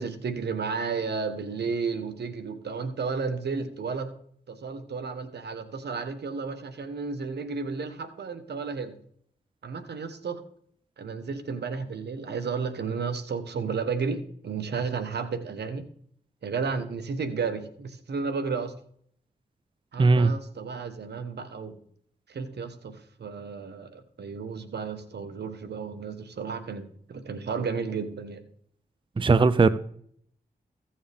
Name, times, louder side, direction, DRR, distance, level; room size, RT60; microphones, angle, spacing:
voice 1, 0.0-4.1 4.5-9.0 9.6-10.4 11.0-15.8 16.4-18.7 19.9-21.8 22.3-22.9 23.2-28.4, right 5 dB, 75° right, 9 dB, 1.3 m, -32 dB
voice 2, 20.0-20.3 29.2-29.7, right 4 dB, 30° right, 15 dB, 0.5 m, -18 dB
15.5 x 7.2 x 3.5 m, 0.64 s
cardioid pair, 45°, 17 cm